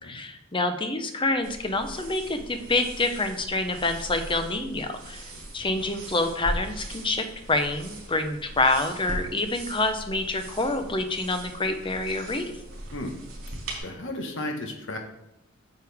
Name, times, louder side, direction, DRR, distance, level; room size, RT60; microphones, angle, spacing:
voice 1, 0.0-5.2 5.5-12.5, left 2 dB, 25° left, 7 dB, 0.8 m, -27 dB
sound 1, 1.4-13.8, right 1 dB, 70° right, 3.4 m, -39 dB
voice 2, 13.5-15.0, left 1 dB, 65° left, 3 dB, 1.4 m, -35 dB
9.4 x 6.7 x 3.5 m, 0.85 s
head